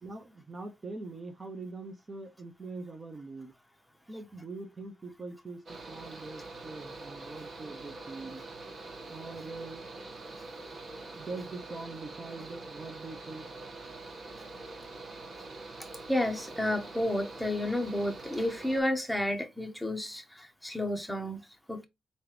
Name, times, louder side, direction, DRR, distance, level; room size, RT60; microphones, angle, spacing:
voice 1, 0.0-3.5 4.1-8.4 9.1-9.9 10.9-13.5, right 3 dB, 30° right, 0.8 m, -43 dB
Mechanical fan, 5.7-18.8, right 2 dB, 45° right, 1.2 m, -44 dB
voice 2, 16.1-21.8, left 1 dB, 5° left, 0.8 m, -31 dB
3.9 x 3.2 x 3.2 m
cardioid pair, 105°, 0 cm